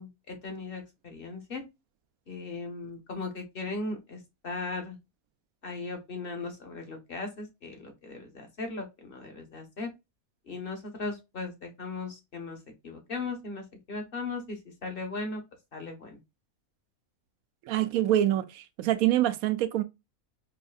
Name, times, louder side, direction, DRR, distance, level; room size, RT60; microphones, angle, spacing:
voice 1, 0.0-1.6 2.3-5.0 5.6-9.9 10.4-12.6 12.8-15.4 15.7-16.2, left 3 dB, 45° left, 1.1 m, -37 dB
voice 2, 17.6-19.8, right 13 dB, 80° right, 1.0 m, -25 dB
4.8 x 2.6 x 2.3 m
omnidirectional pair, 1.5 m